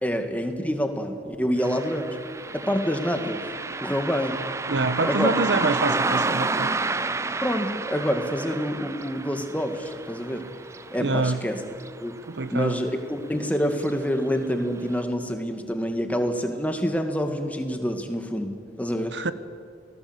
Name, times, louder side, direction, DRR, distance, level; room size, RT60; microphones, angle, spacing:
voice 1, 0.0-2.2 2.5-3.5 3.8-4.4 5.0-5.3 7.4-10.4 10.9-11.6 12.0-12.1 12.5-19.1, equal, 10° left, 5 dB, 2.0 m, -27 dB
Car passing by, 1.6-12.4 12.7-12.8 13.7-13.9 14.4-14.5 15.0-15.1, right 3 dB, 15° right, 0.5 m, -30 dB
voice 2, 4.7-6.7 11.0-11.4 12.3-12.8 19.1-19.3, right 3 dB, 85° right, 12 dB, 1.2 m, -25 dB
28.5 x 19.0 x 8.2 m, 2.4 s
head